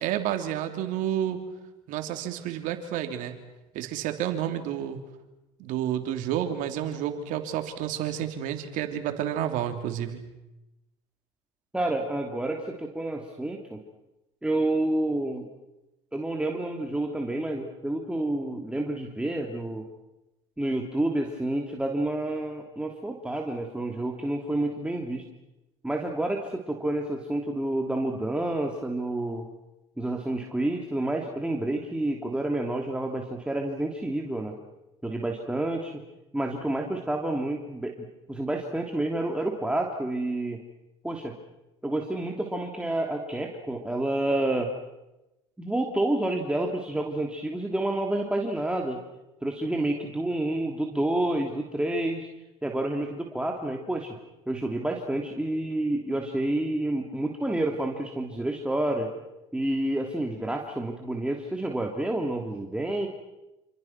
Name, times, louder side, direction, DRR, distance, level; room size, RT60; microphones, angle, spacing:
voice 1, 0.0-1.4 1.9-3.4 3.7-5.0 5.6-10.3, right 10 dB, 65° right, 7 dB, 3.3 m, -30 dB
voice 2, 11.7-13.8 14.4-15.5 16.1-19.9 20.6-25.2 25.8-29.5 30.0-34.5 35.0-36.0 36.3-40.6 41.0-41.3 41.8-44.7 45.6-49.0 49.4-52.3 52.6-54.2 54.5-59.1 59.5-63.1, right 1 dB, 5° right, 1 dB, 3.1 m, -29 dB
28.0 x 27.5 x 6.1 m, 0.96 s
hypercardioid pair, 80°, 14 cm